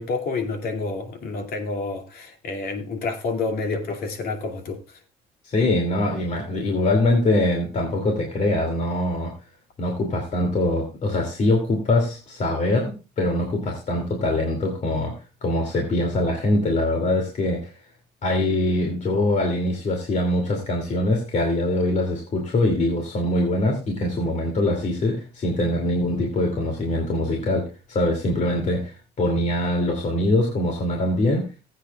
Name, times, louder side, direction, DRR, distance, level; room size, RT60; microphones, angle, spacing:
voice 1, 0.0-4.8, left 3 dB, 60° left, 2.5 m, -29 dB
voice 2, 5.4-9.3 9.8-17.7 18.2-31.5, left 1 dB, 45° left, 2.6 m, -23 dB
20.0 x 8.4 x 2.4 m
cardioid pair, 110°, 17 cm